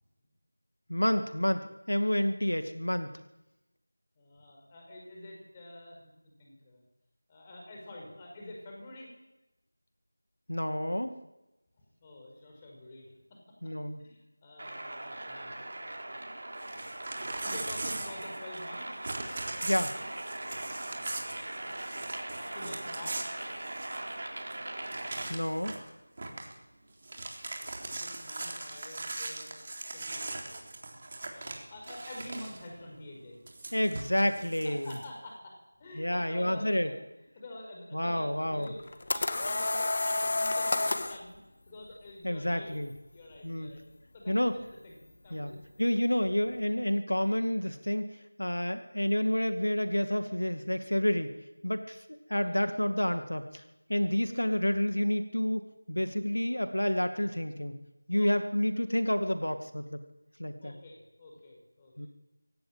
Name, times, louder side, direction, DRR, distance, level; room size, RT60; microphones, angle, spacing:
voice 1, 0.9-3.1 10.5-11.1 13.6-14.0 19.6-20.0 25.3-25.8 33.7-34.9 36.0-36.9 37.9-38.7 42.2-42.9 43.4-43.7 44.3-44.5 45.3-45.5 45.8-51.3 51.6-53.6 53.9-57.8 58.1-60.0 60.4-60.7 62.0-62.1, left 1 dB, 85° left, 8 dB, 2.2 m, -29 dB
voice 2, 4.2-6.8 7.3-9.1 11.8-16.1 16.9-19.1 20.7-21.8 22.4-23.4 27.5-27.7 28.0-29.6 29.9-30.7 31.3-33.4 34.6-37.0 37.3-38.8 39.1-42.7 43.1-43.8 44.1-45.0 45.2-45.9 52.4-52.8 54.2-54.5 58.1-58.3 60.6-62.1, left 1 dB, 15° left, 0 dB, 5.4 m, -48 dB
sound 1, 14.6-25.2, right 1 dB, 45° right, 5.4 m, -40 dB
Crumpling crinkling / Tearing, 16.6-18.7 19.0-24.1 24.5-24.6 24.8-25.9 26.2-26.5 26.9-32.6 33.5-35.0, right 2 dB, 30° right, 3.6 m, -40 dB
sound 2, 38.7-41.2, left 2 dB, 35° left, 1.7 m, -29 dB
24.5 x 17.0 x 9.0 m, 1.0 s
figure-of-eight pair, 170°, 0 cm